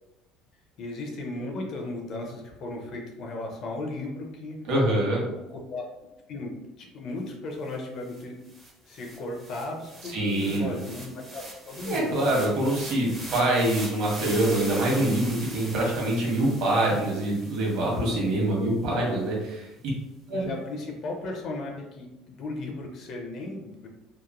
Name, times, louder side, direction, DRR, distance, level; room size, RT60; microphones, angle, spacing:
voice 1, 0.8-4.6 5.5-5.8 6.3-8.4 8.8-12.4 18.9-19.2 20.3-23.9, left 2 dB, 40° left, 1 dB, 0.5 m, -36 dB
voice 2, 4.6-5.2 10.1-10.7 11.8-19.3 20.3-20.5, right 1 dB, 60° right, -3 dB, 1.0 m, -25 dB
sound 1, 7.7-7.8 8.1-18.4, right 1 dB, 15° right, 0.5 m, -42 dB
2.9 x 2.1 x 2.4 m, 0.95 s
cardioid pair, 160°, 0 cm